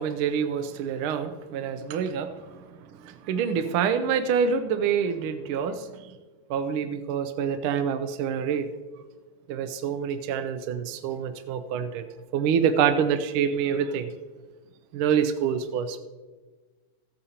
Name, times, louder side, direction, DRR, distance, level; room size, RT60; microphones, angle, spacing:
voice 1, 0.0-2.6 3.0-6.1 6.5-8.7 9.5-12.1 12.3-14.1 14.9-16.0, right 7 dB, 80° right, 9 dB, 1.4 m, -26 dB
15.0 x 8.7 x 2.8 m, 1.3 s
omnidirectional pair, 2.4 m